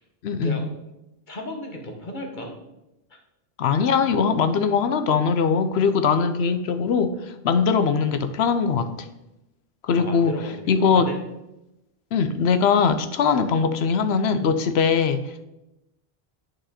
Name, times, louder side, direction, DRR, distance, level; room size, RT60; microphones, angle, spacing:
voice 1, 0.2-0.6 3.6-7.1 7.4-8.9 9.8-10.3 10.7-11.1 12.1-15.4, left 6 dB, 75° left, 10 dB, 0.9 m, -21 dB
voice 2, 1.3-2.5 10.0-11.2, equal, 45° left, 2 dB, 1.3 m, -34 dB
8.9 x 5.1 x 4.2 m, 0.94 s
omnidirectional pair, 1.1 m